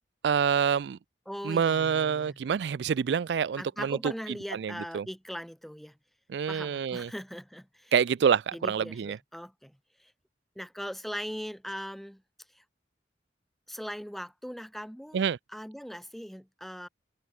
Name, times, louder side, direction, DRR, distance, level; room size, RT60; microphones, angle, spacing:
voice 1, 0.2-1.0 1.4-4.1 4.5-5.0 6.3-7.1 7.9-9.2 15.1-15.4, right 7 dB, 75° right, 0.4 m, -27 dB
voice 2, 1.3-2.4 3.6-6.0 6.5-7.9 8.5-10.1 10.6-12.2 12.5-12.6 13.7-15.2 15.5-16.9, equal, ahead, 2.4 m, -40 dB
head